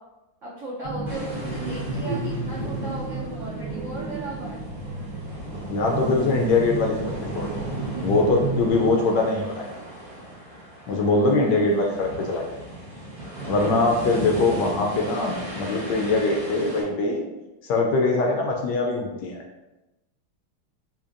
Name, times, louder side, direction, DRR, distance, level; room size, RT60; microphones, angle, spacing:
voice 1, 0.4-4.6 14.2-14.3 18.2-18.4, right 2 dB, 75° right, -7 dB, 0.7 m, -36 dB
sound 1, 0.8-8.9, right 3 dB, 55° right, 1.2 m, -31 dB
sound 2, 1.1-16.8, right 1 dB, 35° right, 0.9 m, -38 dB
voice 2, 5.7-7.6 8.0-9.7 10.9-12.5 13.5-17.2 17.6-19.4, left 3 dB, 75° left, 1 dB, 1.0 m, -22 dB
4.1 x 2.9 x 2.5 m, 1.0 s
omnidirectional pair, 2.3 m